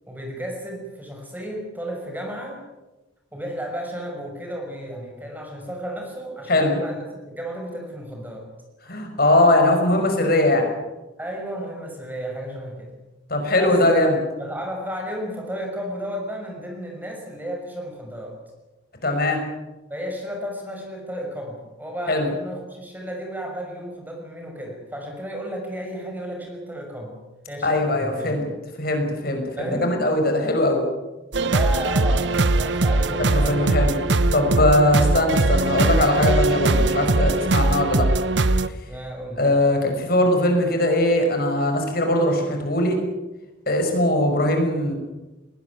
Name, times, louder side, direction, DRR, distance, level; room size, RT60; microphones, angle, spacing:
voice 1, 0.1-2.6 3.3-8.5 11.2-12.9 13.5-13.8 14.4-18.4 19.9-27.2 27.5-28.4 29.6-30.0 31.5-33.7 38.9-39.4, equal, 10° right, 1 dB, 6.1 m, -33 dB
voice 2, 8.9-10.6 13.3-14.2 19.0-19.4 22.1-22.3 27.6-28.5 28.8-30.8 33.3-33.9 34.3-38.1 39.4-43.0 43.7-44.9, left 1 dB, 55° left, 3 dB, 5.5 m, -20 dB
sound 1, 31.3-38.7, right 2 dB, 70° right, 1.0 m, -20 dB
21.0 x 18.5 x 9.5 m, 1.1 s
head